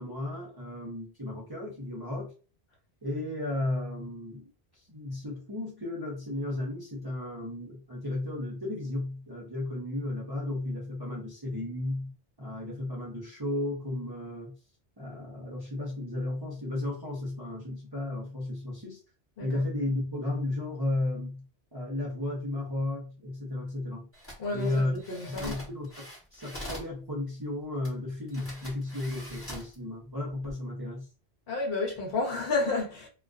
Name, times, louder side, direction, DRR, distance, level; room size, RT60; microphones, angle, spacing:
voice 1, 0.0-2.3 3.0-14.6 15.0-19.0 19.4-21.5 21.7-24.1 24.5-25.0 25.3-31.1, left 2 dB, 30° right, 0.5 m, -34 dB
sound 1, 24.1-26.9 27.8-27.9 28.3-29.7 30.3-30.5, equal, 15° left, 0.8 m, -43 dB
voice 2, 24.4-25.5 31.5-33.1, left 3 dB, 65° left, 0.8 m, -31 dB
2.4 x 2.2 x 2.2 m
omnidirectional pair, 1.1 m